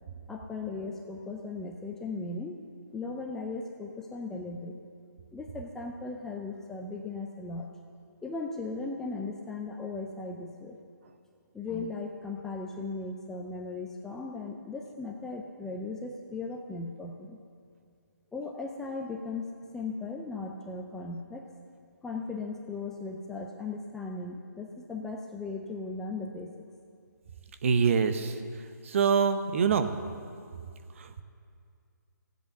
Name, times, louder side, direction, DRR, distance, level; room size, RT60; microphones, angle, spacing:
voice 1, 0.3-2.6 2.9-4.8 5.3-7.7 8.2-10.8 11.5-17.4 18.3-21.5 22.0-26.5, left 3 dB, 5° left, 0 dB, 0.4 m, -37 dB
voice 2, 27.6-28.3 28.8-29.9 31.0-31.2, right 6 dB, 40° right, 9 dB, 0.8 m, -25 dB
15.0 x 8.3 x 7.0 m, 2.3 s
figure-of-eight pair, 155°, 11 cm